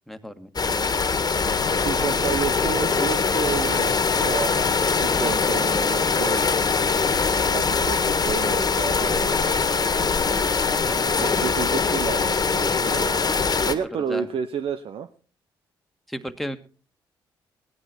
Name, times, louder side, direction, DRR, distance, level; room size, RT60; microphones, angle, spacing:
voice 1, 0.1-0.5 10.9-11.4 14.1-14.3 16.1-16.6, equal, ahead, 8 dB, 1.7 m, -34 dB
sound 1, 0.6-13.8, left 5 dB, 40° left, 1.7 m, -22 dB
voice 2, 1.8-4.7 5.0-6.5 7.5-9.9 11.0-15.1, right 7 dB, 65° right, 9 dB, 0.8 m, -31 dB
17.0 x 10.5 x 4.4 m, 0.38 s
hypercardioid pair, 45°, 10 cm